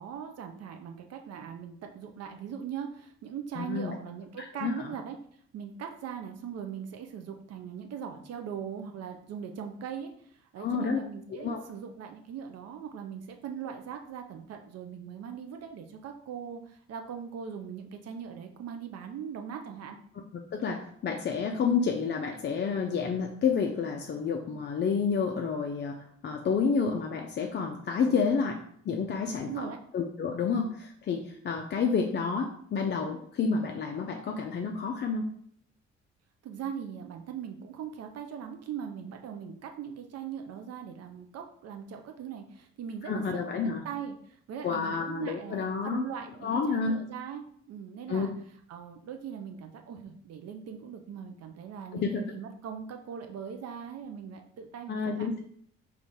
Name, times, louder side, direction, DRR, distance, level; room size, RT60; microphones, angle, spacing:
voice 1, 0.0-5.2 5.5-20.0 28.0-28.3 29.3-29.8 36.4-48.3 48.7-55.3, right 7 dB, 50° right, 4 dB, 0.5 m, -40 dB
voice 2, 3.6-3.9 4.4-4.9 10.6-11.0 11.4-11.6 20.5-26.0 26.2-28.6 28.9-35.3 43.0-43.9 44.6-46.0 46.4-47.0 48.1-48.3 51.9-52.2 54.9-55.4, left 5 dB, 30° left, 2 dB, 0.4 m, -29 dB
3.9 x 2.5 x 3.5 m, 0.62 s
hypercardioid pair, 45°, 33 cm